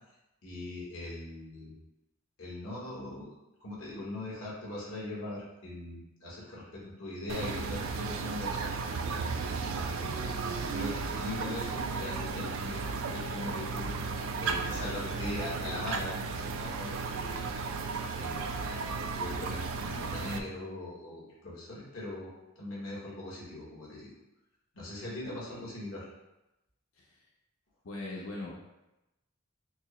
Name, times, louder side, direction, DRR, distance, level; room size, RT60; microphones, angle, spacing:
voice 1, 0.4-1.8 2.4-8.8 9.7-10.3 10.7-13.9 14.4-17.4 18.1-18.4 19.1-24.1 24.7-26.1, left 1 dB, 75° left, -6 dB, 1.3 m, -40 dB
sound 1, 7.3-20.4, right 4 dB, 75° right, 0.3 m, -34 dB
voice 2, 27.8-28.5, left 2 dB, 90° left, -3 dB, 0.7 m, -39 dB
4.5 x 2.0 x 3.1 m, 0.95 s
head